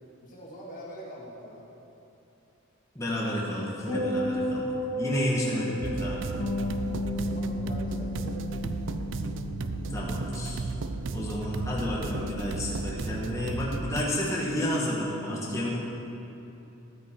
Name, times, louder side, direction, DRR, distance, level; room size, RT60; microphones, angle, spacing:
voice 1, 0.2-1.7 5.5-5.6 6.6-8.8, equal, 40° left, -7 dB, 1.9 m, -45 dB
voice 2, 2.9-4.7 5.0-6.2 9.9-10.6 11.1-15.8, left 1 dB, 15° left, -5 dB, 1.3 m, -31 dB
sound 1, 3.9-8.3 8.6-9.0, equal, 30° right, 2.6 m, -33 dB
sound 2, 5.8-14.0, right 3 dB, 60° right, 0.4 m, -34 dB
Bass guitar, 6.4-12.6, left 3 dB, 55° left, 0.6 m, -37 dB
12.0 x 9.1 x 4.4 m, 2.8 s
head